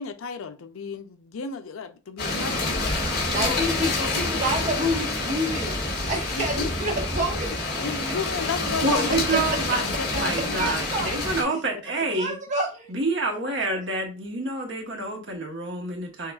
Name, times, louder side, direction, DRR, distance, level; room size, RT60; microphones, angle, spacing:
voice 1, 0.0-2.9 3.4-4.9 6.3-6.7 7.8-9.2 9.8-10.7 13.7-13.8, left 5 dB, 85° left, 0.5 m, -34 dB
sound 1, 2.2-11.4, left 2 dB, 50° left, 1.8 m, -27 dB
voice 2, 3.3-7.7 9.1-9.6 10.6-11.2 12.1-12.9, equal, 35° right, 1.1 m, -28 dB
voice 3, 8.8-12.3 12.9-16.3, right 2 dB, 65° right, 1.1 m, -28 dB
6.5 x 2.4 x 2.3 m
head